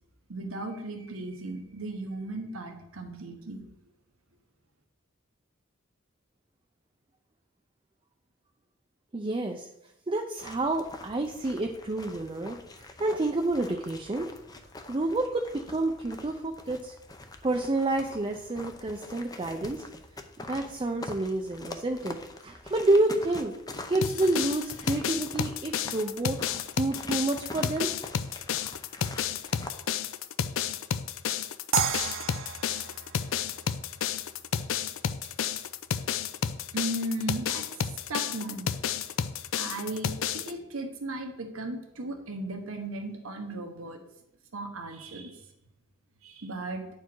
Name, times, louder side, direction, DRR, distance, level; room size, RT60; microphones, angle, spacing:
voice 1, 0.3-3.6 36.7-38.7 39.5-44.0 44.5-45.4 46.2-46.9, right 2 dB, 85° right, 4 dB, 1.2 m, -36 dB
voice 2, 9.1-9.7 10.1-12.6 13.0-14.3 14.9-16.9 17.4-19.8 20.4-22.2 22.4-23.5 23.9-26.5 26.8-27.9, right 2 dB, 25° right, 3 dB, 0.5 m, -29 dB
sound 1, 10.4-29.8, left 2 dB, 20° left, 0.6 m, -45 dB
sound 2, 24.0-40.5, left 8 dB, 70° left, 0.4 m, -31 dB
sound 3, 31.7-34.8, right 8 dB, 70° right, 0.6 m, -33 dB
9.6 x 4.6 x 4.6 m, 0.83 s
head